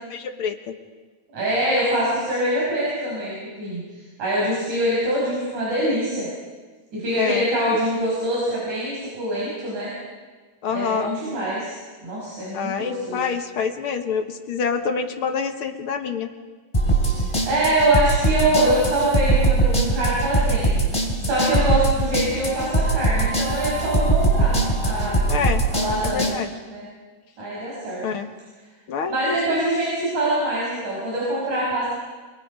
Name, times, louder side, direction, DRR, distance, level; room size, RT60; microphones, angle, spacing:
voice 1, 0.1-0.7 7.2-7.5 10.6-11.1 12.5-16.3 25.3-25.6 26.0-26.5 28.0-28.3 28.9-29.6, left 6 dB, 55° left, 6 dB, 1.7 m, -27 dB
voice 2, 1.3-6.3 6.9-9.9 10.7-13.2 17.5-20.9 21.2-25.2 25.7-26.3 26.7-26.9 27.4-28.0 29.1-31.9, right 1 dB, 65° right, -6 dB, 7.1 m, -24 dB
sound 1, 16.7-26.3, right 2 dB, 10° left, 3.6 m, -21 dB
29.0 x 21.5 x 5.3 m, 1.4 s
omnidirectional pair, 3.7 m